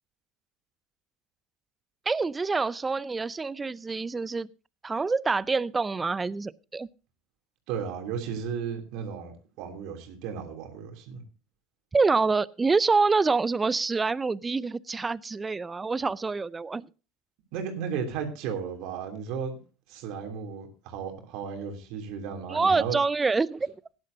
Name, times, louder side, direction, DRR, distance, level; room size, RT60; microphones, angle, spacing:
voice 1, 2.1-4.5 4.8-6.9 11.9-16.9 22.5-23.7, right 4 dB, 20° right, 0.5 m, -26 dB
voice 2, 7.7-11.2 17.5-19.6 19.9-23.0, right 7 dB, 60° right, 3.0 m, -34 dB
17.0 x 10.5 x 2.7 m
hypercardioid pair, 80°, 0 cm